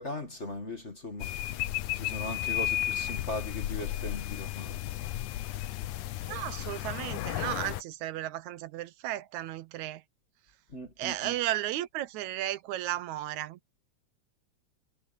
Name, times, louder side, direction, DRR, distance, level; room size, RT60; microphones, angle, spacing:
voice 1, 0.0-1.5 1.9-4.8 10.7-11.3, left 1 dB, 25° left, 1.7 m, -39 dB
sound 1, 1.2-7.8, left 14 dB, 80° left, 2.2 m, -33 dB
voice 2, 6.2-10.0 11.0-13.6, right 14 dB, 75° right, 2.1 m, -34 dB
omnidirectional pair, 3.4 m